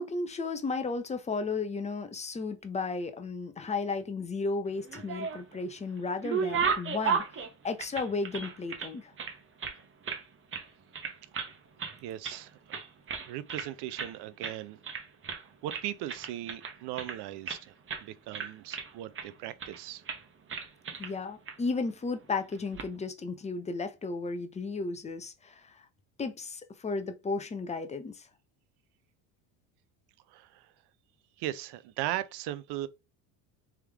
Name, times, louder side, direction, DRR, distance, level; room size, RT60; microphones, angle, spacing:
voice 1, 0.0-7.2 7.6-9.1 21.0-25.6 26.2-28.2, left 4 dB, 15° left, 0.6 m, -34 dB
sound 1, 4.8-5.6 6.0-8.9 9.2-10.2 10.5-10.7 10.9-11.5 11.8-12.4 12.7-13.7 14.0-14.1 14.4-14.6 14.8-15.4 15.7-17.6 17.9-18.1 18.3-19.3 19.6-19.8 20.1-20.2 20.5-21.1 21.5-21.6 22.5-22.9, right 6 dB, 30° right, 0.9 m, -34 dB
voice 2, 12.0-12.6 13.3-14.8 15.4-20.0 30.3-30.7 31.4-32.9, right 13 dB, 60° right, 0.6 m, -38 dB
3.5 x 3.2 x 3.4 m
supercardioid pair, 110°, 44 cm